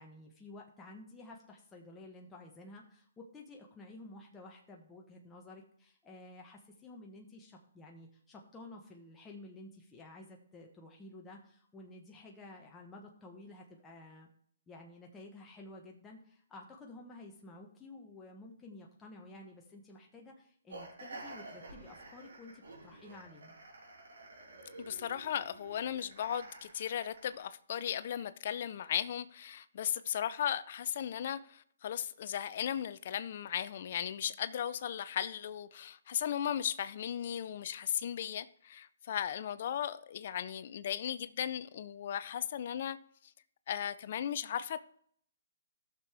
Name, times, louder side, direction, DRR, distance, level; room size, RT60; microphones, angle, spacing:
voice 1, 0.0-14.3 14.7-23.6, left 2 dB, 15° left, 1.2 m, -52 dB
sound 1, 20.7-27.5, right 2 dB, 75° right, 3.9 m, -50 dB
voice 2, 24.9-43.0 43.7-44.8, left 9 dB, 50° left, 0.5 m, -36 dB
15.0 x 6.6 x 3.5 m
hypercardioid pair, 140°, 0 cm